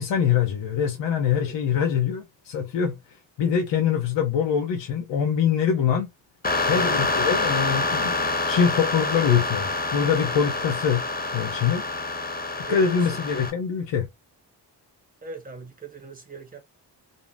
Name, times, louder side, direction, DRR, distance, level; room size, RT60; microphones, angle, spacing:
voice 1, 0.0-3.0 3.4-6.1 6.7-11.0 11.3-11.8 12.7-14.1, left 7 dB, 80° left, 0.7 m, -24 dB
sound 1, 6.4-13.5, left 3 dB, 20° left, 0.8 m, -27 dB
voice 2, 12.5-13.2 15.2-16.6, right 4 dB, 20° right, 1.1 m, -40 dB
2.6 x 2.0 x 3.2 m
cardioid pair, 85°, 43 cm